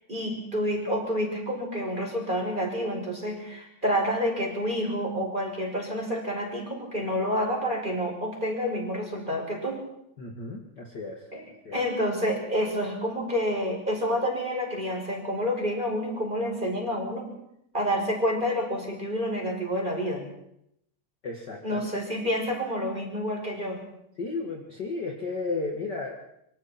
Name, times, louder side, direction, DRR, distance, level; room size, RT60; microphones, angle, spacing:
voice 1, 0.1-9.8 11.3-17.3 17.7-20.2 21.6-23.8, equal, 10° right, 0 dB, 5.3 m, -29 dB
voice 2, 10.2-11.3 11.6-11.8 21.2-21.9 24.2-26.1, left 3 dB, 40° left, 0 dB, 1.5 m, -33 dB
26.5 x 24.0 x 4.4 m, 0.75 s
omnidirectional pair, 5.0 m